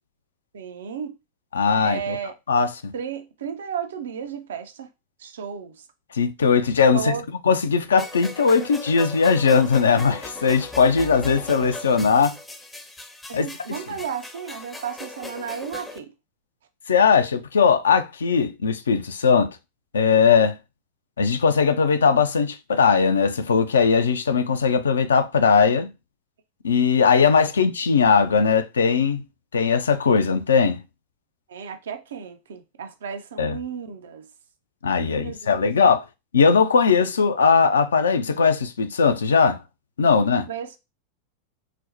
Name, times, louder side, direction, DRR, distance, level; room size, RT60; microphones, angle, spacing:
voice 1, 0.5-1.2 1.8-2.3 2.9-4.9 5.2-5.8 6.9-7.2 13.3-16.1 31.5-34.3 35.0-35.9 40.5-40.8, right 8 dB, 65° right, 0.4 m, -33 dB
voice 2, 1.5-2.2 2.5-2.9 6.1-7.1 7.5-12.3 13.3-13.5 16.9-19.5 19.9-20.6 21.2-25.9 26.6-29.2 29.5-30.8 33.4-33.6 34.8-36.0 36.3-39.6 40.0-40.5, left 5 dB, 70° left, 0.4 m, -19 dB
sound 1, 8.0-16.0, left 2 dB, 10° left, 0.5 m, -38 dB
4.1 x 2.0 x 2.6 m
figure-of-eight pair, 90°, 0 cm